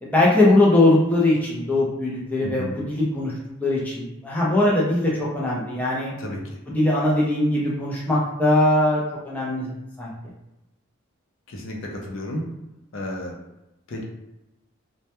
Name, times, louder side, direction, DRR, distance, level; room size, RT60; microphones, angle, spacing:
voice 1, 0.0-3.3 3.6-6.1 6.7-9.7 10.0-10.1, left 2 dB, 10° left, -6 dB, 0.4 m, -20 dB
voice 2, 2.4-2.7 6.2-6.6 11.5-12.4 12.9-13.4 13.9-14.0, left 1 dB, 70° left, -1 dB, 0.5 m, -32 dB
2.2 x 2.1 x 2.8 m, 0.92 s
head